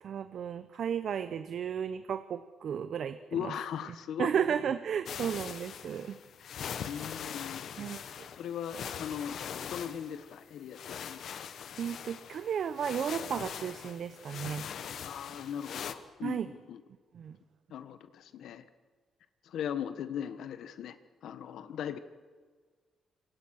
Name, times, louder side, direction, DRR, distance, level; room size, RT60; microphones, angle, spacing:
voice 1, 0.0-3.5 4.2-6.2 7.8-8.3 11.8-14.6 16.2-16.5 17.1-17.4, right 8 dB, 55° right, 12 dB, 0.9 m, -34 dB
voice 2, 3.3-4.3 6.4-7.7 8.0-9.4 9.7-11.4 15.0-16.8 17.7-18.6 19.4-21.0 21.2-22.0, left 9 dB, 80° left, 12 dB, 1.4 m, -39 dB
sound 1, 5.1-15.9, left 8 dB, 60° left, 1.5 m, -42 dB
27.0 x 25.0 x 6.5 m, 1.5 s
wide cardioid pair, 170°, 0 cm